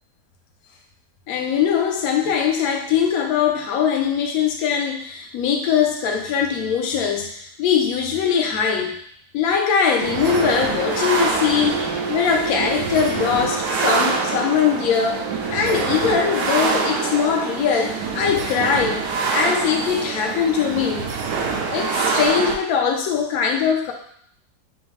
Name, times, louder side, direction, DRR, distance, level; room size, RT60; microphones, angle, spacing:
voice 1, 1.3-8.9 9.3-15.2 15.5-19.0 19.3-21.0 21.7-23.9, left 7 dB, 70° left, 2 dB, 1.0 m, -21 dB
sound 1, 10.0-22.6, right 4 dB, 75° right, 1.0 m, -25 dB
4.1 x 2.6 x 3.2 m, 0.64 s
omnidirectional pair, 1.8 m